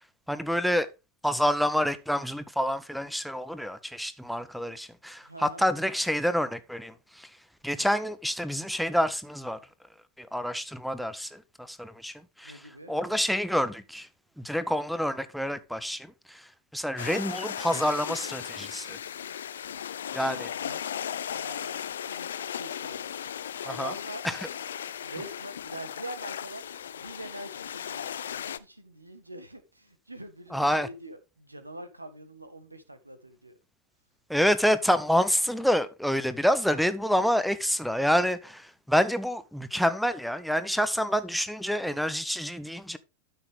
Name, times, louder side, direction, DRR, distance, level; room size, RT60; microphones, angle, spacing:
voice 1, 0.3-0.9 1.2-7.3 7.6-9.6 10.2-12.5 12.9-14.1 14.4-19.0 20.1-20.5 23.7-23.9 24.2-24.3 30.5-30.9 34.3-43.0, equal, ahead, 0.8 m, -27 dB
voice 2, 5.2-5.7 12.4-12.9 19.9-21.8 22.1-23.3 23.6-24.3 25.0-26.6 26.9-33.5, right 1 dB, 85° right, 1.5 m, -44 dB
sound 1, 17.0-28.6, left 9 dB, 65° left, 0.6 m, -36 dB
12.5 x 6.1 x 3.6 m
figure-of-eight pair, 90°, 0 cm